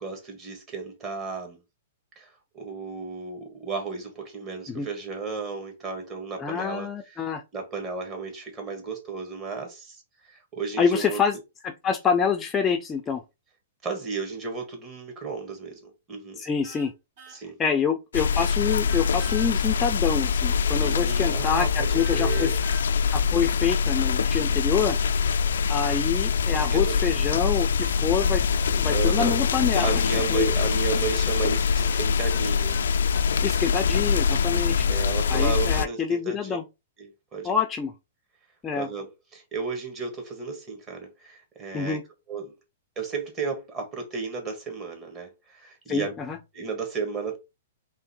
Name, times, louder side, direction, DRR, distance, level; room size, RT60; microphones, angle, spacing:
voice 1, 0.0-1.6 2.2-7.2 7.5-11.2 13.8-16.4 17.3-17.6 20.8-22.6 24.5-24.9 26.5-27.2 28.9-29.4 29.8-32.8 34.9-36.6 37.0-37.5 38.7-42.0 42.3-42.5 43.0-46.1 46.5-47.4, right 5 dB, 25° right, 1.8 m, -34 dB
voice 2, 6.4-7.4 10.8-11.4 11.6-13.2 16.4-16.9 17.6-22.5 23.1-25.0 25.7-28.4 28.7-30.5 33.4-34.9 35.3-36.6 37.4-37.9 38.6-38.9 41.7-42.0 45.9-46.4, left 6 dB, 15° left, 0.5 m, -26 dB
sound 1, 16.6-16.9 17.2-17.4 18.6-19.5 22.0-22.9 27.3-29.2 31.8-33.7, right 2 dB, 55° right, 2.5 m, -44 dB
sound 2, 18.1-35.9, left 6 dB, 85° left, 0.4 m, -24 dB
3.6 x 3.2 x 4.4 m
hypercardioid pair, 145°, 0 cm